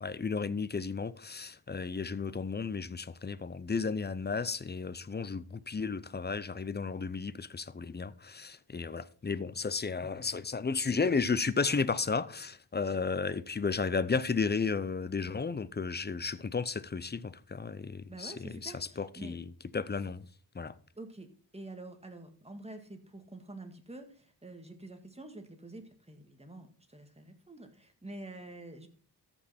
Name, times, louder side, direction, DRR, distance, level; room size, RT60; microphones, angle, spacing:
voice 1, 0.0-19.4 19.7-20.3 20.5-20.7, left 5 dB, 25° left, 0.5 m, -33 dB
voice 2, 18.1-19.4 21.0-28.9, right 2 dB, 15° right, 1.7 m, -47 dB
14.0 x 5.5 x 4.2 m
wide cardioid pair, 75°, 42 cm